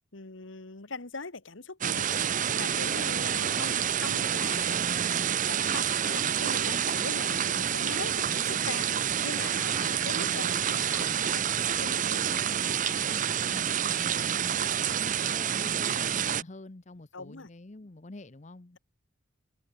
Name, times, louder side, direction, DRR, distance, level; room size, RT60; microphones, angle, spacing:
voice 1, 0.1-2.1 2.6-12.4 12.8-13.0 17.1-17.5, left 3 dB, 75° left, 1.8 m, -41 dB
sound 1, 1.8-16.4, right 9 dB, 40° right, 0.6 m, -28 dB
voice 2, 13.4-18.8, left 2 dB, 35° left, 0.8 m, -47 dB
head